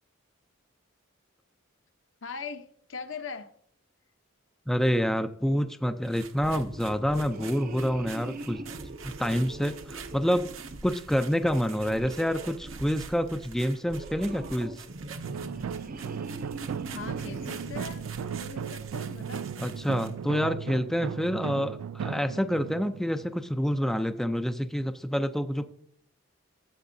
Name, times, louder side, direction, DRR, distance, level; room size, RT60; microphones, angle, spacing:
voice 1, 2.2-3.5 16.9-19.5, left 5 dB, 65° left, 8 dB, 0.9 m, -41 dB
voice 2, 4.7-8.6 9.0-10.5 10.8-14.8 19.6-25.7, equal, ahead, 8 dB, 0.3 m, -27 dB
sound 1, 6.0-20.2, right 7 dB, 70° right, 1.1 m, -47 dB
sound 2, 6.3-18.8, right 2 dB, 40° right, 0.6 m, -42 dB
sound 3, 15.2-24.0, right 7 dB, 90° right, 0.3 m, -37 dB
14.5 x 7.7 x 2.6 m, 0.67 s
head